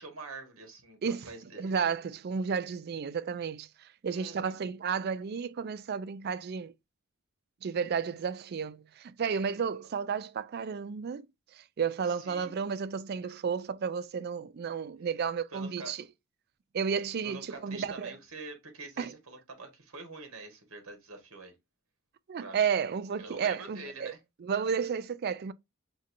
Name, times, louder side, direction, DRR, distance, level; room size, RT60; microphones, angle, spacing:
voice 1, 0.0-1.7 4.1-4.5 12.1-12.7 15.5-16.1 17.2-21.5 22.4-22.7 23.2-24.2, right 3 dB, 70° right, 1.4 m, -45 dB
voice 2, 1.6-6.7 7.6-11.3 11.5-16.0 16.7-18.1 19.0-19.1 22.3-24.1 24.4-25.5, right 6 dB, 45° right, 0.3 m, -32 dB
6.2 x 2.7 x 2.5 m
head